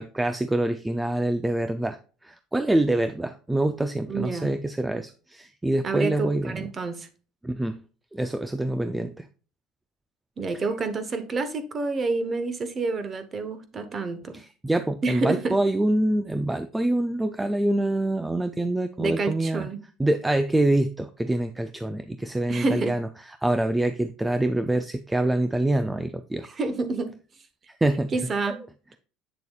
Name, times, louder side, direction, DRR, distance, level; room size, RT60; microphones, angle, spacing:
voice 1, 0.0-6.6 7.4-7.8 8.1-9.3 14.3-19.7 20.0-23.1 23.4-26.5 27.8-28.1 28.5-28.6, right 1 dB, 5° right, 0.4 m, -25 dB
voice 2, 4.1-4.5 5.8-7.1 10.4-14.4 15.0-15.6 19.0-19.8 22.5-22.9 26.5-27.2 28.1-28.6, right 3 dB, 25° right, 1.0 m, -28 dB
8.1 x 6.8 x 2.3 m
cardioid pair, 150°, 0 cm